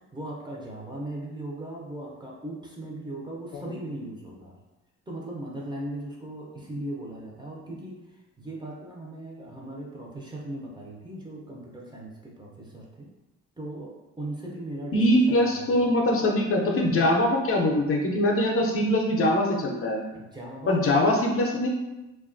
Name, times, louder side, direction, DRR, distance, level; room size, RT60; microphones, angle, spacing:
voice 1, 0.1-4.5 5.1-8.0 8.4-13.1 13.6-15.9 20.1-21.0, right 1 dB, 15° right, -3 dB, 0.6 m, -38 dB
voice 2, 14.9-20.0 20.7-21.7, left 1 dB, 45° left, 0 dB, 0.5 m, -22 dB
2.6 x 2.3 x 2.5 m, 1.0 s
cardioid pair, 90°, 30 cm